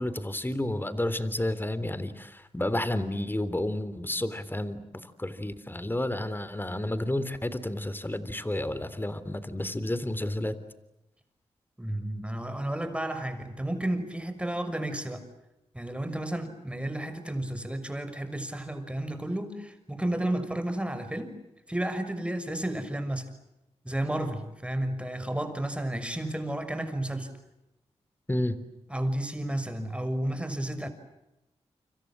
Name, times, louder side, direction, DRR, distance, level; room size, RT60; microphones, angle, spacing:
voice 1, 0.0-10.5 28.3-28.6, left 1 dB, 15° left, 14 dB, 3.5 m, -31 dB
voice 2, 11.8-15.2 15.7-21.4 21.7-23.3 23.8-27.3 28.9-30.9, right 1 dB, 10° right, 9 dB, 6.3 m, -32 dB
29.5 x 26.5 x 7.6 m, 0.92 s
cardioid pair, 50°, 12 cm